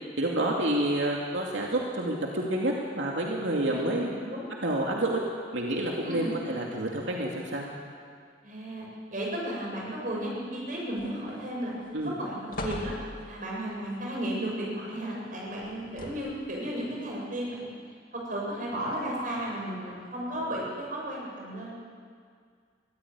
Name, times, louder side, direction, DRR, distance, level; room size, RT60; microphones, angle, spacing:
voice 1, 0.2-4.1 4.6-5.2 5.5-7.7 11.9-12.1, right 1 dB, 90° right, -2 dB, 2.5 m, -28 dB
voice 2, 3.7-4.5 6.0-6.4 8.4-11.7 12.0-12.9 13.2-17.7 18.1-21.7, right 1 dB, 45° right, -3 dB, 7.4 m, -34 dB
sound 1, 11.0-11.5 11.9-12.1 12.5-13.5 15.6-16.5 17.2-17.3, left 1 dB, 50° left, 2.6 m, -39 dB
24.0 x 14.5 x 9.6 m, 2.1 s
head